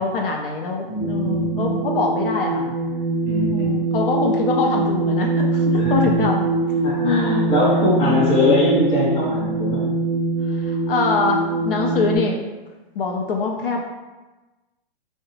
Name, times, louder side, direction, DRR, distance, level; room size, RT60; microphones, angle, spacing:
voice 1, 0.0-2.7 3.5-6.5 7.0-7.6 8.0-8.2 10.4-12.4 13.0-13.9, left 4 dB, 70° left, 1 dB, 0.4 m, -24 dB
voice 2, 0.9-1.8 3.2-3.8 5.8-6.1 6.8-9.8, left 1 dB, 20° left, -6 dB, 0.6 m, -21 dB
sound 1, 1.0-12.2, right 3 dB, 30° right, 0.6 m, -23 dB
2.7 x 2.1 x 2.7 m, 1.2 s
hypercardioid pair, 150°, 29 cm